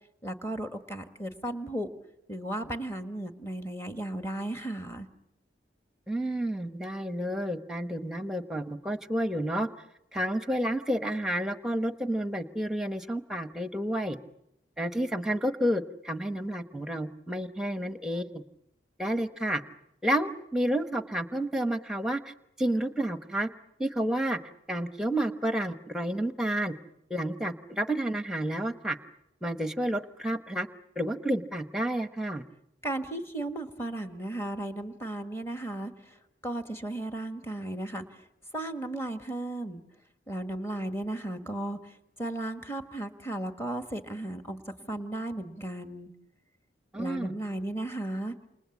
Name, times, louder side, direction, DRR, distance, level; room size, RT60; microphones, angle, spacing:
voice 1, 0.2-1.9 2.3-5.1 32.8-36.2 36.4-38.2 38.5-39.8 40.3-46.1 46.9-48.3, right 1 dB, 15° left, 7 dB, 1.7 m, -35 dB
voice 2, 6.1-9.7 10.1-14.2 14.8-18.4 19.0-19.6 20.0-23.5 23.8-24.4 24.7-26.8 27.1-29.0 29.4-30.7 31.0-32.4 46.9-47.3, right 1 dB, 5° right, 9 dB, 1.0 m, -30 dB
28.5 x 28.0 x 7.3 m, 0.81 s
head